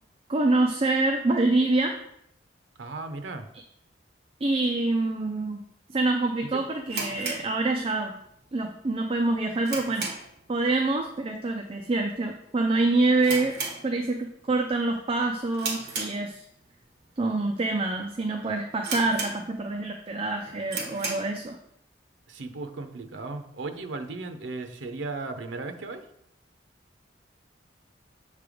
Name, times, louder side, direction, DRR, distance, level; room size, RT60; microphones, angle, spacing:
voice 1, 0.3-1.9 4.4-5.6 5.9-8.1 8.5-10.1 10.5-13.5 13.8-16.4 17.2-21.6, right 2 dB, 30° right, 3 dB, 0.4 m, -26 dB
voice 2, 2.8-3.5 6.4-6.6 20.5-20.7 22.3-26.1, right 3 dB, 90° right, 8 dB, 0.6 m, -36 dB
sound 1, 6.9-8.2 8.5-8.6 9.1-10.5 10.8-11.1 11.3-11.4 12.1-12.4 12.7-12.8 13.2-14.4 14.7-15.0 15.5-16.7 17.2-17.3 17.9-18.0 18.3-18.4 18.8-19.8 20.2-20.3 20.6-21.4, right 4 dB, 60° right, 1.3 m, -34 dB
6.8 x 3.3 x 5.0 m, 0.74 s
head